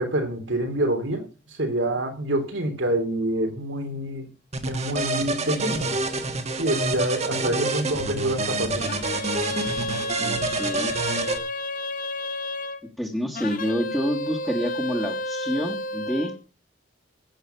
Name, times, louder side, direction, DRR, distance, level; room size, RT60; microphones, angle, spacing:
voice 1, 0.0-4.3 4.6-6.0 6.6-8.9, right 1 dB, 85° right, 6 dB, 3.3 m, -27 dB
sound 1, 4.5-11.4, right 3 dB, 35° right, 1.4 m, -27 dB
sound 2, 8.8-12.8 13.3-16.4, left 1 dB, 45° left, 1.0 m, -31 dB
voice 2, 10.2-10.9 13.0-16.3, equal, ahead, -2 dB, 1.6 m, -28 dB
15.0 x 8.4 x 5.7 m, 0.34 s
head